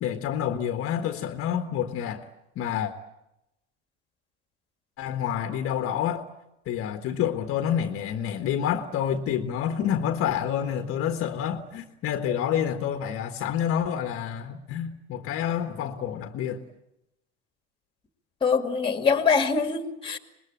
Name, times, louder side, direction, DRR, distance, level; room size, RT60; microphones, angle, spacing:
voice 1, 0.0-2.3 2.5-2.9 5.0-6.2 6.7-16.6, left 9 dB, 40° left, 1.5 m, -28 dB
voice 2, 18.4-20.2, left 5 dB, 15° left, 2.2 m, -23 dB
24.5 x 21.0 x 8.7 m
supercardioid pair, 135°, 34 cm